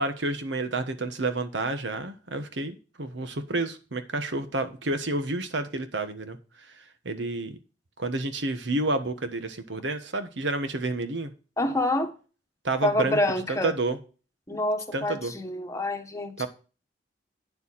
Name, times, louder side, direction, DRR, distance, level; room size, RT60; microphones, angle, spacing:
voice 1, 0.0-7.6 8.0-11.3 12.6-13.2 13.5-14.0 14.9-15.3 16.4-16.5, right 2 dB, 70° right, 1.3 m, -30 dB
voice 2, 11.6-12.1 12.8-13.7 14.5-16.5, left 1 dB, 15° left, 1.3 m, -27 dB
9.4 x 7.1 x 4.1 m
head